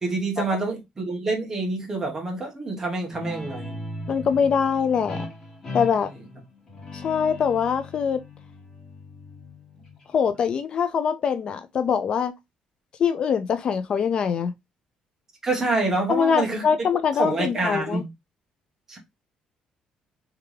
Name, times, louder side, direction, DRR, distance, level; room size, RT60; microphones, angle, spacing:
voice 1, 0.0-3.8 15.4-16.6 17.2-18.1 18.9-19.0, right 3 dB, 20° right, 1.3 m, -27 dB
Guitar, 3.1-10.3, left 2 dB, 20° left, 2.1 m, -38 dB
voice 2, 4.1-5.2 5.7-6.1 6.9-8.2 10.1-12.3 13.0-14.5 16.1-18.0, left 7 dB, 40° left, 0.4 m, -23 dB
3.4 x 3.4 x 3.2 m
cardioid pair, 160°, 2 cm